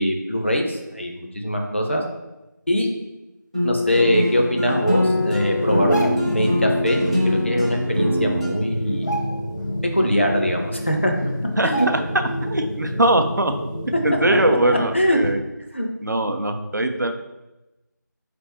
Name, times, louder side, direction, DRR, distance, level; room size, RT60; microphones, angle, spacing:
voice 1, 0.0-2.0 2.7-2.9 3.6-7.0 7.2-9.1 9.9-11.3 11.6-11.9 14.9-15.2 15.7-15.9, equal, 40° left, 2 dB, 0.5 m, -22 dB
sound 1, 3.5-8.5, left 1 dB, 20° right, 0.6 m, -23 dB
sound 2, 4.8-15.0, left 1 dB, 85° left, 1.3 m, -30 dB
sound 3, 5.7-6.5 7.9-8.0 8.3-8.6 8.9-9.8 10.2-10.3 11.0-11.1 11.7-12.3 12.7-12.8, right 2 dB, 70° left, 0.8 m, -31 dB
voice 2, 11.6-13.5 14.0-15.4 16.0-17.1, right 1 dB, 70° right, 6 dB, 0.5 m, -21 dB
4.0 x 3.4 x 3.0 m, 0.99 s
figure-of-eight pair, 175°, 10 cm